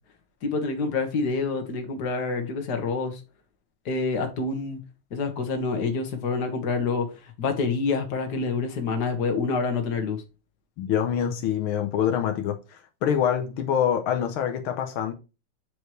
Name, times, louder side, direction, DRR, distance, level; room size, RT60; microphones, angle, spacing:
voice 1, 0.4-3.2 3.9-4.8 5.1-7.1 7.4-10.2, left 4 dB, 55° left, 1.9 m, -27 dB
voice 2, 10.8-12.6 13.0-15.1, left 9 dB, 85° left, 1.7 m, -25 dB
7.8 x 5.0 x 3.1 m
omnidirectional pair, 2.3 m